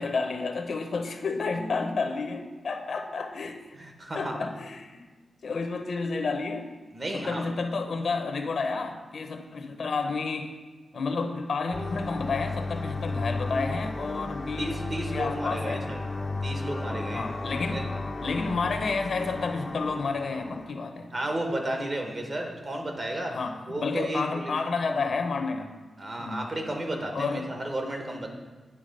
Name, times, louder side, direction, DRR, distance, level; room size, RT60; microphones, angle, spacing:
voice 1, 0.0-3.6 4.1-5.1 5.4-6.7 7.1-10.5 10.9-14.8 15.1-15.9 17.1-17.8 18.2-21.1 23.3-25.7 26.2-26.5 27.1-27.5, left 4 dB, 65° left, 6 dB, 0.7 m, -30 dB
voice 2, 3.7-4.3 6.9-7.5 14.6-16.0 16.4-17.3 17.7-17.8 21.1-23.3 23.7-24.6 26.0-28.3, right 1 dB, 35° right, 2 dB, 1.1 m, -33 dB
sound 1, 11.7-20.7, left 2 dB, 25° left, 0.5 m, -34 dB
9.0 x 3.5 x 5.3 m, 1.3 s
wide cardioid pair, 115°, 0 cm